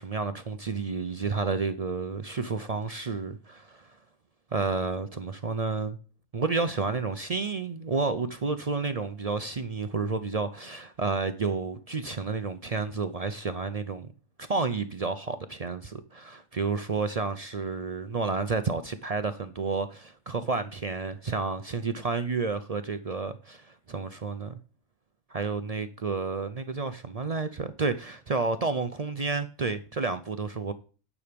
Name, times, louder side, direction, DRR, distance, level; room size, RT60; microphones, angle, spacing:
voice 1, 0.0-4.0 4.5-6.0 6.3-14.1 14.4-24.6 25.3-30.7, right 4 dB, 50° right, 0.4 m, -30 dB
9.8 x 6.3 x 5.1 m
omnidirectional pair, 1.4 m